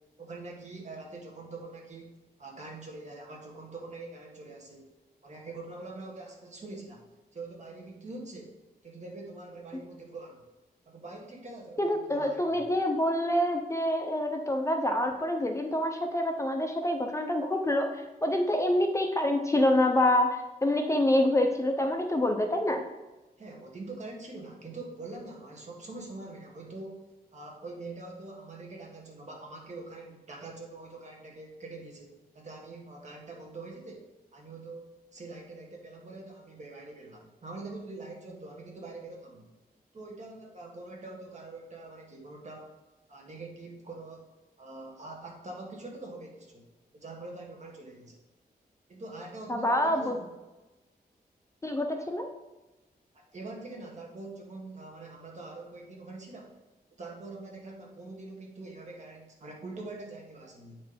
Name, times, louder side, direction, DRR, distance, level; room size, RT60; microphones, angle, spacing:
voice 1, 0.2-4.9 5.2-7.1 7.3-8.5 8.8-10.4 10.8-12.6 23.4-27.0 27.3-34.0 34.3-39.5 39.9-42.7 43.1-44.3 44.6-46.7 46.9-48.1 48.9-50.3 53.1-56.5 56.9-60.8, right 2 dB, 45° right, 0 dB, 1.8 m, -44 dB
voice 2, 11.8-22.8 49.5-50.1 51.6-52.3, left 1 dB, 20° left, 4 dB, 0.6 m, -26 dB
8.7 x 4.5 x 5.1 m, 1.1 s
wide cardioid pair, 125°, 16 cm